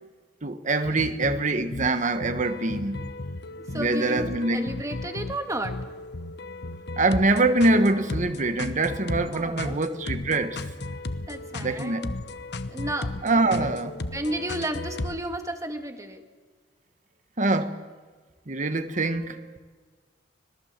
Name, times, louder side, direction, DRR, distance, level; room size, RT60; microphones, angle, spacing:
voice 1, 0.4-3.0 3.7-4.7 7.0-10.6 11.6-12.1 13.2-13.9 17.4-17.8 18.5-19.6, right 2 dB, 40° right, 1.5 m, -24 dB
sound 1, 0.8-15.2, left 2 dB, 60° left, 1.1 m, -35 dB
voice 2, 3.6-5.8 9.3-10.0 11.3-12.1 12.7-13.3 13.6-13.7 14.1-16.2, right 1 dB, 15° right, 1.9 m, -33 dB
26.0 x 18.5 x 7.5 m
head